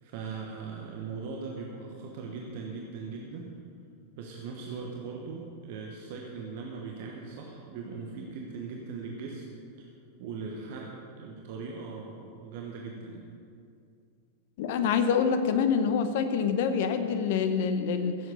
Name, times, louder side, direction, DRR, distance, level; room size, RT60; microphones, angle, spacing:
voice 1, 0.0-3.5 4.2-9.4 9.8-9.9 10.2-13.3, right 4 dB, 50° right, -1 dB, 1.2 m, -39 dB
voice 2, 14.6-18.2, left 6 dB, 50° left, 9 dB, 0.9 m, -26 dB
15.0 x 7.9 x 5.3 m, 2.4 s
figure-of-eight pair, 90°, 0 cm